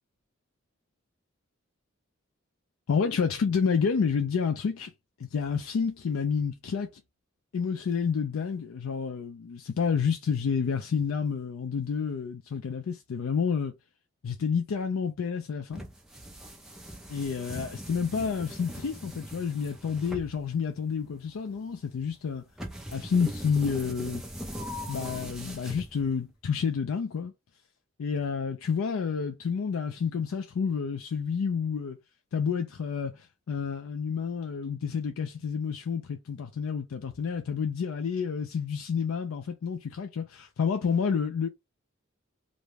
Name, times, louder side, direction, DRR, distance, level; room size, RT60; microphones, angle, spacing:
voice 1, 2.9-4.9 5.2-6.9 7.5-13.7 14.2-15.8 17.1-22.4 22.9-24.2 24.9-27.3 28.0-32.0 32.3-41.5, left 6 dB, 85° left, 0.4 m, -29 dB
sound 1, 15.7-26.3, equal, ahead, 0.4 m, -41 dB
2.6 x 2.1 x 3.1 m
head